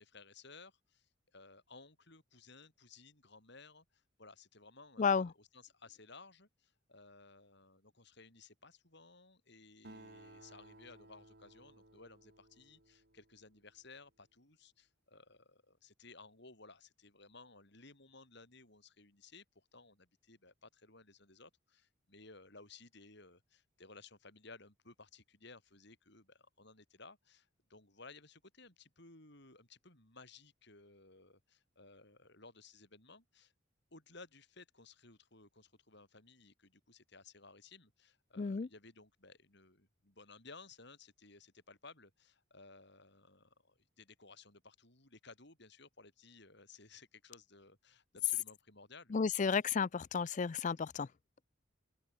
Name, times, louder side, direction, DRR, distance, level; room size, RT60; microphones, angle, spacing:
voice 1, 0.0-33.5 33.9-49.2, left 3 dB, 55° left, 7.0 m, -58 dB
voice 2, 5.0-5.3 38.4-38.7 49.1-51.1, left 5 dB, 35° left, 0.4 m, -32 dB
Acoustic guitar, 9.8-13.6, right 1 dB, 50° right, 5.4 m, -58 dB
head